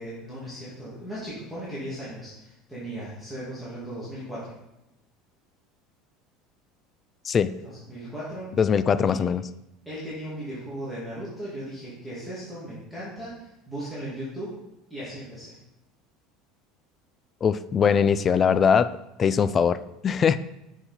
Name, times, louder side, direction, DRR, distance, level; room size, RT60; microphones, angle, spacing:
voice 1, 0.0-4.5 7.6-8.5 9.0-9.3 9.9-14.5 14.9-15.6, right 1 dB, ahead, -10 dB, 2.3 m, -37 dB
voice 2, 8.6-9.4 17.4-18.9 19.2-20.4, left 7 dB, 25° left, 14 dB, 0.3 m, -21 dB
7.8 x 6.2 x 4.3 m, 0.90 s
cardioid pair, 165°, 0 cm